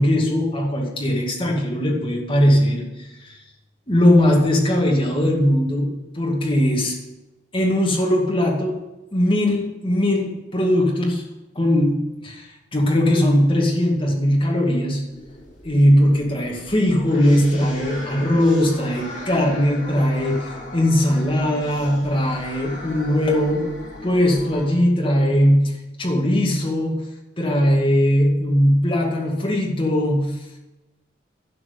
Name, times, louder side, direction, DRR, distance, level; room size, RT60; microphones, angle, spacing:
voice 1, 0.0-3.4 3.9-7.0 7.5-8.8 9.1-11.2 11.6-15.1 15.6-23.7 24.0-27.1 27.4-30.4, equal, 30° left, -2 dB, 2.2 m, -19 dB
sound 1, 15.1-24.7, left 1 dB, 45° left, 4.2 m, -37 dB
12.0 x 4.7 x 8.6 m, 1.0 s
head